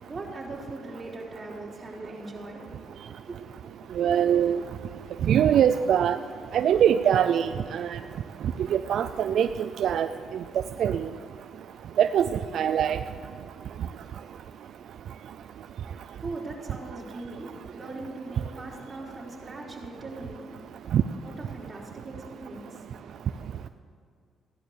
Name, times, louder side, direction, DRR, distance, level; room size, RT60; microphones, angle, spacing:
voice 1, 0.0-2.9 3.3-3.7 15.8-21.0 21.2-23.7, right 2 dB, 30° right, -3 dB, 3.9 m, -41 dB
voice 2, 4.0-4.6 5.2-6.2 6.5-8.0 8.7-10.1 10.8-11.1 12.0-12.3 12.5-13.0 20.9-21.0, right 9 dB, 70° right, 10 dB, 0.4 m, -22 dB
16.0 x 11.0 x 6.6 m, 2.3 s
cardioid pair, 90°, 0 cm